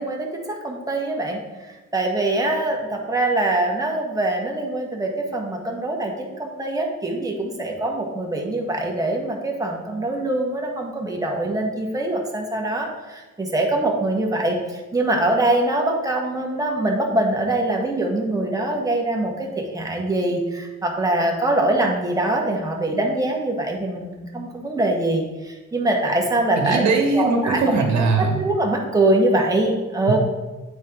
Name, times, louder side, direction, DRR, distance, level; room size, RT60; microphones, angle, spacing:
voice 1, 0.0-1.4 1.9-26.8 27.1-27.6 28.2-30.2, right 2 dB, 10° right, -1 dB, 1.5 m, -23 dB
voice 2, 26.5-28.4, right 3 dB, 65° right, 1 dB, 1.8 m, -20 dB
9.2 x 4.2 x 3.8 m, 1.1 s
cardioid pair, 90°, 30 cm